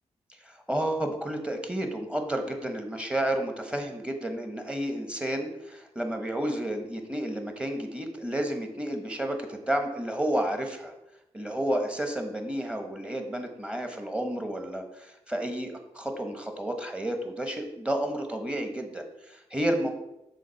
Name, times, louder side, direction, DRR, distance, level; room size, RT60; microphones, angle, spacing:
voice 1, 0.4-10.9 11.3-19.9, right 1 dB, 10° right, 5 dB, 1.2 m, -31 dB
6.3 x 3.7 x 5.7 m, 0.87 s
cardioid pair, 70°, 12 cm